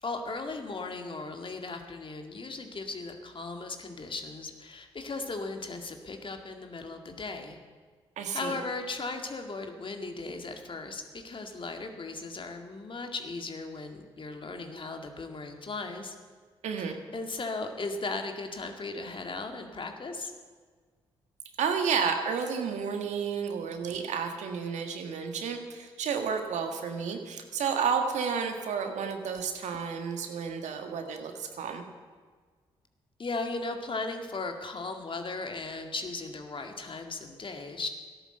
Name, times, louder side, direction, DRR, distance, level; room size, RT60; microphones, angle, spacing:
voice 1, 0.0-7.6 8.3-16.2 16.8-20.3 33.2-37.9, left 3 dB, 45° left, 5 dB, 2.1 m, -37 dB
voice 2, 8.2-8.6 16.6-16.9 21.6-31.8, right 6 dB, 70° right, 5 dB, 1.8 m, -31 dB
13.0 x 11.5 x 7.9 m, 1.5 s
hypercardioid pair, 45°, 13 cm